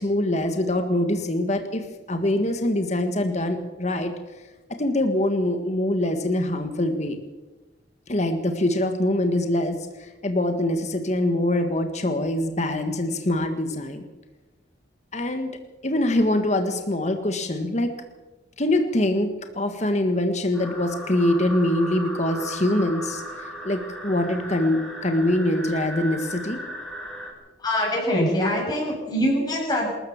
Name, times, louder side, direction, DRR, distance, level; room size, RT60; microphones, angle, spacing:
voice 1, 0.0-4.1 4.4-4.5 4.8-7.2 8.1-14.0 15.1-15.5 15.8-17.9 18.6-26.6, left 1 dB, 40° left, 6 dB, 1.6 m, -24 dB
sound 1, 20.5-27.3, right 1 dB, 5° left, 4.8 m, -36 dB
voice 2, 27.6-29.9, equal, 20° left, -3 dB, 7.4 m, -23 dB
27.0 x 14.0 x 7.2 m, 1.1 s
head